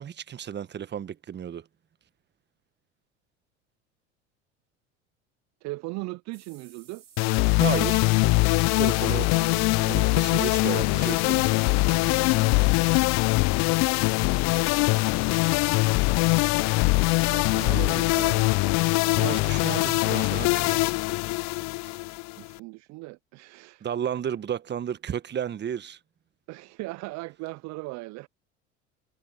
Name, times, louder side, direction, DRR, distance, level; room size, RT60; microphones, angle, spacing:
voice 1, 0.0-1.6 7.6-8.0 8.8-9.3 9.9-11.5 19.2-20.7 23.8-26.0, right 9 dB, 30° right, 1.4 m, -32 dB
voice 2, 5.6-7.0 11.8-12.9 17.3-18.5 22.4-23.9 26.5-28.3, right 24 dB, 50° right, 0.7 m, -38 dB
sound 1, 6.3-11.3, right 8 dB, 90° right, 5.7 m, -55 dB
sound 2, 7.2-22.6, left 25 dB, 50° left, 0.6 m, -22 dB
Keyboard (musical), 9.4-11.3, left 11 dB, 85° left, 2.3 m, -37 dB
hypercardioid pair, 80°, 35 cm